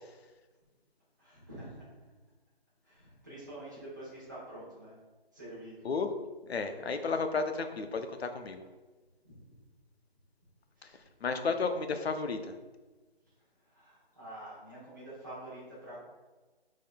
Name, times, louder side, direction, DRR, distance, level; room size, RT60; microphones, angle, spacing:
voice 1, 1.2-1.9 2.8-5.0 5.3-6.0 6.4-6.5 9.2-9.4 10.8-11.0 13.6-16.0, right 1 dB, 20° right, -10 dB, 0.9 m, -47 dB
voice 2, 6.4-8.6 11.2-12.6, left 4 dB, 80° left, 7 dB, 0.6 m, -32 dB
5.1 x 3.7 x 2.2 m, 1.2 s
figure-of-eight pair, 180°, 31 cm